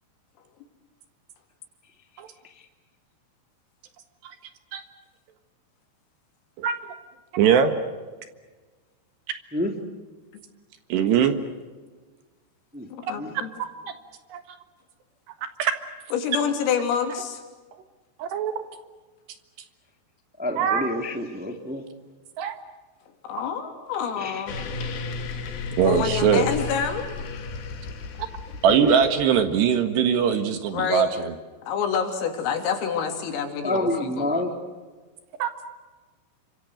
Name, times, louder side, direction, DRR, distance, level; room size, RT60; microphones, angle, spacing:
voice 1, 7.3-7.7 10.9-11.4 13.6-13.7 14.3-14.4 15.4-15.7 18.2-18.5 20.6-20.9 22.4-22.5 25.8-26.5 28.6-31.3 35.4-35.5, right 8 dB, 65° right, 8 dB, 3.3 m, -21 dB
voice 2, 12.9-13.5 16.1-17.4 23.2-24.6 25.8-27.0 30.7-31.1 31.7-34.5, left 7 dB, 85° left, 4 dB, 5.8 m, -27 dB
voice 3, 20.4-21.8 24.2-24.4 28.7-29.1 33.6-34.5, left 1 dB, 15° right, 3 dB, 0.3 m, -28 dB
sound 1, 24.5-29.4, left 4 dB, 55° left, 3.4 m, -33 dB
28.5 x 25.5 x 6.5 m, 1.3 s
omnidirectional pair, 5.8 m